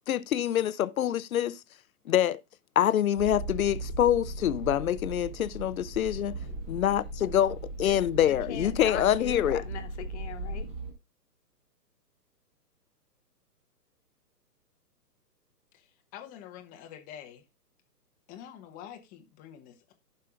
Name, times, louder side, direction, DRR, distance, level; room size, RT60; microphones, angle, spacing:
voice 1, 0.1-1.6 2.1-2.4 2.8-6.3 6.7-9.6, left 11 dB, 60° left, 0.7 m, -26 dB
sound 1, 3.2-10.9, right 2 dB, 15° right, 1.2 m, -38 dB
voice 2, 8.2-10.7, left 10 dB, 45° left, 1.4 m, -40 dB
voice 3, 15.7-17.4 18.3-19.9, left 10 dB, 15° left, 1.0 m, -47 dB
15.0 x 5.5 x 2.4 m
hypercardioid pair, 135°, 49 cm